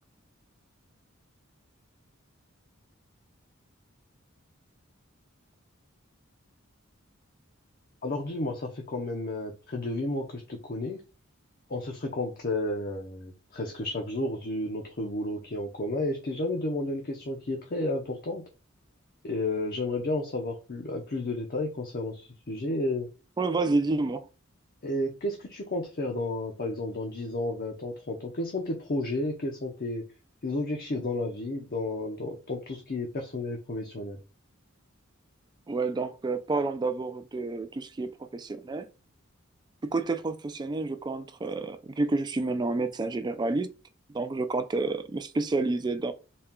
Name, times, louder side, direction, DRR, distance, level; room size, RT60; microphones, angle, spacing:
voice 1, 8.0-11.0 11.7-18.4 19.2-23.1 24.8-30.0 30.4-34.2, left 2 dB, 45° left, 0.7 m, -32 dB
voice 2, 23.4-24.3 35.7-38.9 39.8-43.7 44.1-46.1, right 3 dB, 20° right, 0.3 m, -29 dB
4.2 x 2.3 x 3.6 m
head